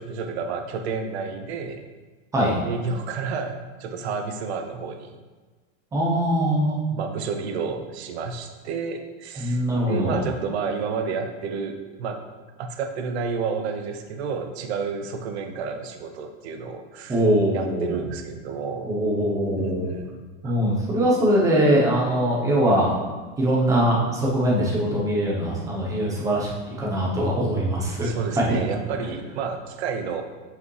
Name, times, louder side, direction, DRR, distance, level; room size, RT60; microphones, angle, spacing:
voice 1, 0.0-1.8 2.6-5.2 6.9-12.2 12.6-17.2 17.5-18.9 19.6-20.5 28.0-30.2, right 5 dB, 50° right, 5 dB, 0.8 m, -30 dB
voice 2, 5.9-6.8 9.4-10.2 17.1-18.0 18.8-19.9 20.4-22.9 23.4-26.5 26.8-28.1 28.4-28.5, equal, 10° right, -4 dB, 0.8 m, -22 dB
8.2 x 5.0 x 3.2 m, 1.3 s
supercardioid pair, 170°, 40 cm